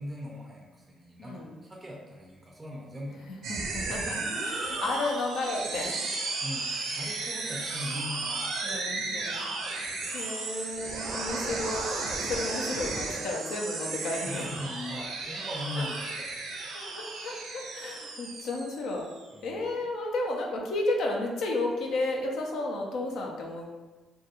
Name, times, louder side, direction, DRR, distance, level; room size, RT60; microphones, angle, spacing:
voice 1, 0.0-3.4 6.2-10.1 10.9-11.1 14.3-16.6 19.3-19.7, left 1 dB, 15° right, -1 dB, 0.4 m, -41 dB
voice 2, 1.2-1.6 3.3-6.0 8.6-9.5 10.1-11.8 12.2-14.5 15.8-15.9 16.7-19.0 19.4-23.7, left 2 dB, 80° left, 0 dB, 0.4 m, -33 dB
sound 1, 3.4-19.2, right 3 dB, 80° right, 0.4 m, -34 dB
2.3 x 2.2 x 2.9 m, 1.2 s
cardioid pair, 90°, 0 cm